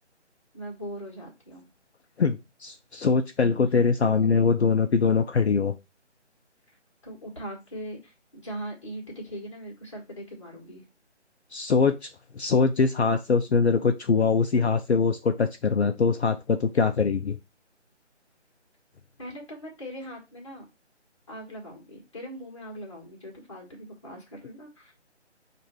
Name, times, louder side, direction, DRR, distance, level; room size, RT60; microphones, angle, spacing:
voice 1, 0.5-1.7 4.2-4.3 7.0-10.8 19.2-20.6 21.3-24.9, equal, 25° left, 1.3 m, -40 dB
voice 2, 2.2-5.7 11.5-12.0 12.3-17.4, left 5 dB, 65° left, 0.5 m, -23 dB
4.8 x 2.5 x 4.3 m
figure-of-eight pair, 155°, 36 cm